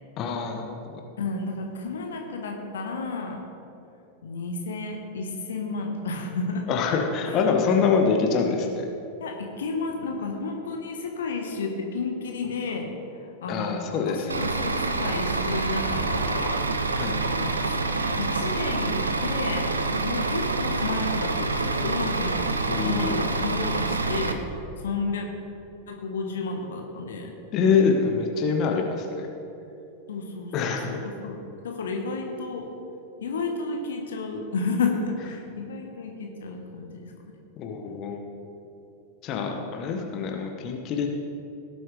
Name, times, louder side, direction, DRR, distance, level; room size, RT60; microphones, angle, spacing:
voice 1, 0.2-1.1 6.7-8.8 13.5-14.5 17.0-17.1 22.7-23.3 27.5-29.3 30.5-31.0 37.6-38.2 39.2-41.1, left 5 dB, 35° left, 2 dB, 1.2 m, -25 dB
voice 2, 1.2-3.4 4.2-6.7 7.3-7.4 9.2-16.6 17.2-17.7 18.2-19.7 20.0-25.3 25.9-27.3 30.1-32.7 33.2-37.1 37.8-37.9, left 3 dB, 65° left, 2 dB, 1.2 m, -32 dB
Bus / Idling, 14.3-24.3, right 3 dB, 75° right, 0.7 m, -27 dB
18.0 x 7.7 x 3.3 m, 2.8 s
figure-of-eight pair, 90°, 0 cm